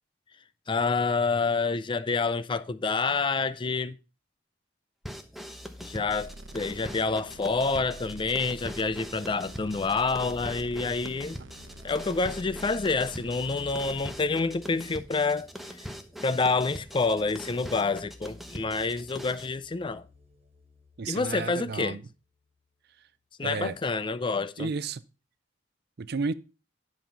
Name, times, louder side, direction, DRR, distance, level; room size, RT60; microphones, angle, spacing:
voice 1, 0.7-4.0 5.8-11.4 11.8-15.5 16.2-20.1 21.1-22.0 23.4-24.7, left 4 dB, 25° left, 0.4 m, -28 dB
sound 1, 5.0-19.5, equal, ahead, 0.9 m, -42 dB
sound 2, 5.2-22.6, left 2 dB, 35° right, 2.1 m, -54 dB
sound 3, 6.1-14.1, right 2 dB, 75° right, 0.9 m, -47 dB
voice 2, 21.0-22.0 23.4-23.8 24.6-25.0 26.0-26.3, right 4 dB, 55° right, 0.5 m, -32 dB
10.5 x 5.4 x 5.6 m
head